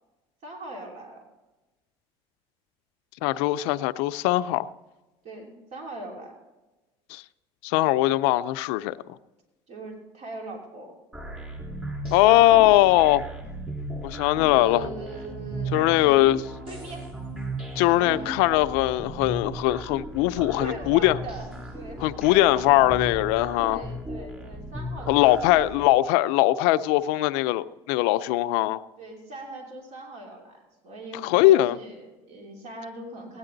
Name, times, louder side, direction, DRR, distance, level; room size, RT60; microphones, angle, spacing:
voice 1, 0.4-1.2 5.2-6.3 9.7-11.0 14.3-16.3 16.7-17.1 17.8-18.4 20.3-22.7 23.6-25.5 29.0-30.6 30.8-33.4, right 2 dB, 55° right, 3.1 m, -40 dB
voice 2, 3.2-4.7 7.1-7.2 7.6-9.0 12.1-13.2 14.0-14.9 15.7-16.4 17.8-21.2 22.0-23.8 25.1-28.8 31.2-31.8, left 16 dB, 80° left, 0.5 m, -21 dB
sound 1, 11.1-25.9, right 1 dB, 10° right, 3.6 m, -36 dB
17.0 x 9.6 x 3.9 m
supercardioid pair, 105°, 14 cm